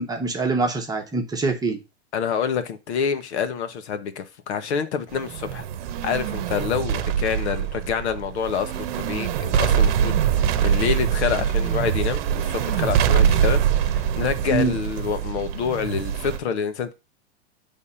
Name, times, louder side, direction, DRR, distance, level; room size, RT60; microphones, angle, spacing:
voice 1, 0.0-1.8 14.5-14.8, right 3 dB, 10° right, 1.1 m, -24 dB
voice 2, 2.1-5.6 6.0-16.9, left 7 dB, 70° left, 1.4 m, -27 dB
sound 1, 5.1-16.4, right 8 dB, 45° right, 1.0 m, -23 dB
8.3 x 3.6 x 5.6 m
hypercardioid pair, 140°, 35 cm